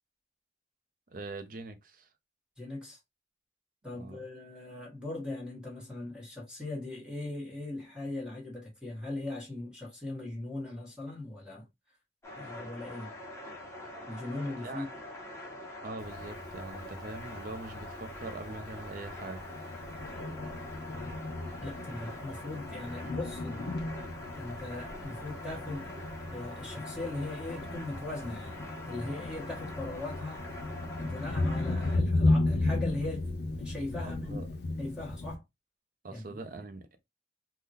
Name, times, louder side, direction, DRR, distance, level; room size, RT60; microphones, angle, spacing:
voice 1, 1.1-2.1 3.9-4.2 14.6-14.9 15.8-19.4 34.0-34.5 36.0-37.0, right 3 dB, 50° right, 0.5 m, -43 dB
voice 2, 2.6-3.0 3.8-11.7 12.4-13.1 14.1-14.9 21.6-23.7 24.3-25.9 26.3-30.4 31.0-33.3 33.6-34.4 34.8-35.4 36.1-36.4, left 2 dB, 5° right, 1.2 m, -39 dB
sound 1, 12.2-32.0, left 1 dB, 15° left, 0.8 m, -44 dB
Thunder, 16.0-35.3, left 2 dB, 60° left, 0.5 m, -35 dB
3.6 x 2.2 x 2.7 m
head